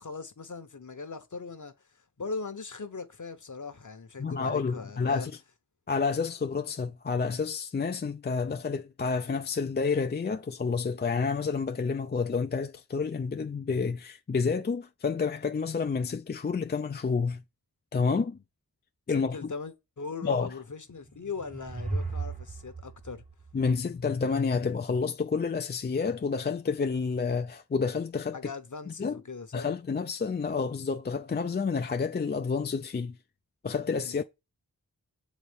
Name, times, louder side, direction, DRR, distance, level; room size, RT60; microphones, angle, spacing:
voice 1, 0.0-5.3 19.1-23.2 28.3-29.7 34.0-34.3, left 4 dB, 55° left, 1.0 m, -40 dB
voice 2, 4.2-5.3 5.9-17.4 17.9-18.4 19.1-19.5 20.2-20.5 23.5-28.4 28.9-29.2 29.5-33.2 33.6-34.3, left 5 dB, 30° left, 0.4 m, -29 dB
sound 1, 20.9-24.4, right 3 dB, 20° right, 0.8 m, -37 dB
7.2 x 4.1 x 3.5 m
wide cardioid pair, 50°, 36 cm